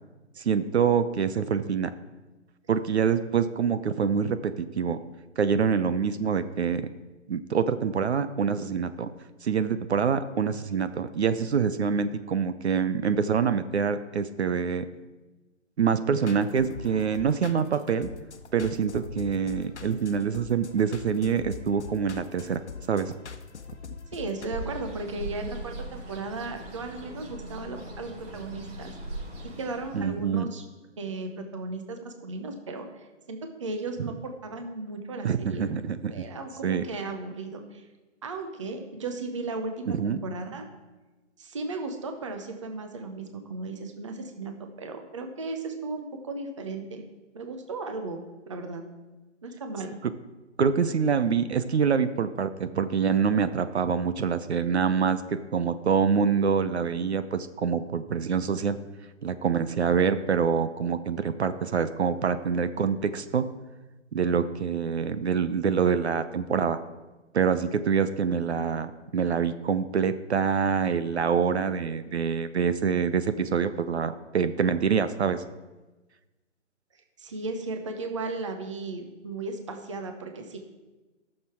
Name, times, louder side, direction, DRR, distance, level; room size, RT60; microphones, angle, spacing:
voice 1, 0.4-1.9 2.7-5.0 5.4-6.9 7.3-9.1 9.4-14.8 15.8-18.1 18.5-22.6 22.9-23.1 29.9-30.5 35.2-36.2 36.6-36.8 39.9-40.2 50.6-58.8 59.2-63.4 64.1-66.8 67.3-75.4, right 6 dB, 60° right, 11 dB, 0.7 m, -26 dB
sound 1, 16.2-24.5, left 6 dB, 65° left, 1.0 m, -43 dB
voice 2, 24.1-28.9 29.4-30.6 31.0-35.7 36.1-37.9 38.2-40.7 41.4-47.0 47.3-48.8 49.4-49.9 77.2-80.6, right 3 dB, 25° right, 5 dB, 0.7 m, -36 dB
Bird, 24.3-30.2, equal, 75° right, 4.1 m, -40 dB
13.5 x 6.7 x 4.4 m, 1.2 s
hypercardioid pair, 165°, 37 cm